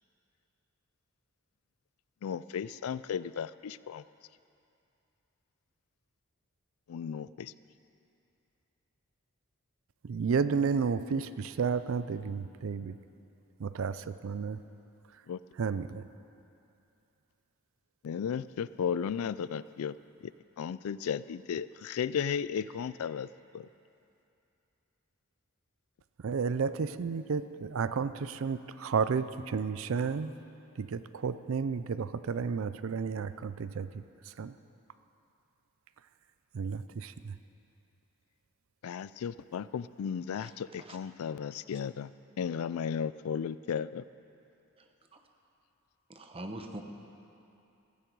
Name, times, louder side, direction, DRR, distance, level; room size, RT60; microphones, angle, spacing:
voice 1, 2.2-4.0 6.9-7.5 15.3-15.4 18.0-20.0 20.2-23.3 23.5-23.7 38.8-42.1 42.4-44.0, left 7 dB, 80° left, 17 dB, 0.3 m, -35 dB
voice 2, 10.0-13.0 13.6-14.6 15.6-16.0 26.2-30.3 30.8-34.0 34.4-34.5 36.5-37.3, right 5 dB, 70° right, 13 dB, 0.4 m, -32 dB
voice 3, 44.8-45.2 46.1-46.8, right 1 dB, 25° right, 4 dB, 1.0 m, -44 dB
16.0 x 14.5 x 4.7 m, 2.7 s
head